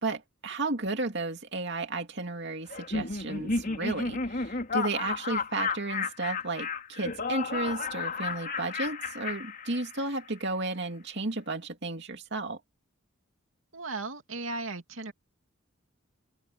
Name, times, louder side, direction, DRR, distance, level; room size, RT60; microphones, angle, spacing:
voice 1, 0.0-12.6, right 2 dB, 55° right, 2.7 m, -33 dB
Laughter, 2.7-10.2, left 4 dB, 45° left, 4.2 m, -33 dB
voice 2, 13.7-15.1, right 3 dB, 75° right, 2.5 m, -36 dB
open air
head